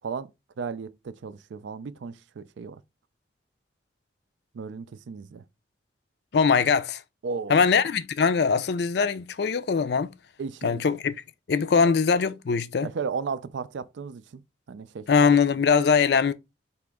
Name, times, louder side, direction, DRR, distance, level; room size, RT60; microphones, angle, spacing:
voice 1, 0.6-2.8 4.5-5.4 7.2-7.7 10.4-10.9 11.8-11.9 12.8-14.4 14.7-15.1, right 5 dB, 80° right, 0.4 m, -35 dB
voice 2, 6.3-7.0 7.5-10.1 10.6-11.1 11.5-12.9 15.1-16.3, left 5 dB, 60° left, 0.4 m, -22 dB
4.2 x 2.9 x 3.6 m
head